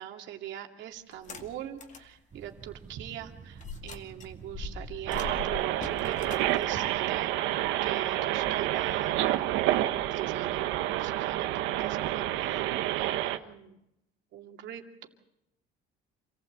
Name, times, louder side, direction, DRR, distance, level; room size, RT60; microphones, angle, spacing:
voice 1, 0.0-13.8 14.3-15.1, right 11 dB, 75° right, 3 dB, 2.5 m, -42 dB
sound 1, 1.1-2.1 2.6-2.7 3.6-7.9, left 5 dB, 40° left, 2.3 m, -42 dB
sound 2, 2.3-7.6, right 6 dB, 40° right, 2.4 m, -50 dB
sound 3, 5.1-13.4, right 14 dB, 90° right, 1.2 m, -29 dB
27.5 x 15.5 x 8.0 m, 0.85 s
cardioid pair, 105°, 19 cm